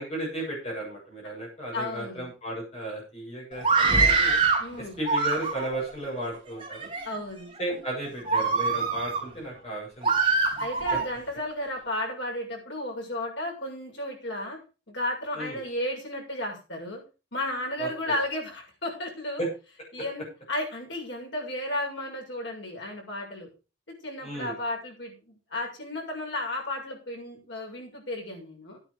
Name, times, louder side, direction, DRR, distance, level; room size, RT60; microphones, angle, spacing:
voice 1, 0.0-4.4 4.8-6.9 7.6-10.1 10.5-10.6 10.9-11.0 15.3-15.6 17.8-18.1 19.4-19.5 24.2-24.5, right 1 dB, 35° left, -3 dB, 7.8 m, -34 dB
voice 2, 1.7-2.3 4.6-5.0 7.0-7.5 10.6-14.6 14.9-17.0 17.3-19.5 19.9-23.5 24.0-28.8, left 1 dB, 75° left, 0 dB, 6.7 m, -33 dB
Screaming, 3.6-4.7 5.0-5.8 6.5-7.0 7.6-7.7 8.3-9.2 10.0-11.1, right 4 dB, 30° right, 3.3 m, -24 dB
11.0 x 10.0 x 5.1 m, 0.33 s
head